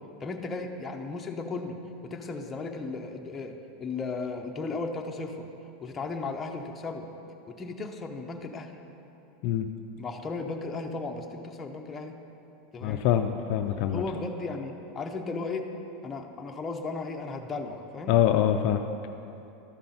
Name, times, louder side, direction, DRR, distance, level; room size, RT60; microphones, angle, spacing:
voice 1, 0.2-1.8 2.0-5.5 5.8-7.1 7.5-8.8 10.0-12.2 12.7-13.1 13.8-15.7 16.0-18.2, left 3 dB, 15° left, 3 dB, 0.7 m, -35 dB
voice 2, 12.8-14.0 18.1-18.8, left 11 dB, 55° left, 6 dB, 0.4 m, -24 dB
13.0 x 5.6 x 3.9 m, 2.9 s
supercardioid pair, 150°, 0 cm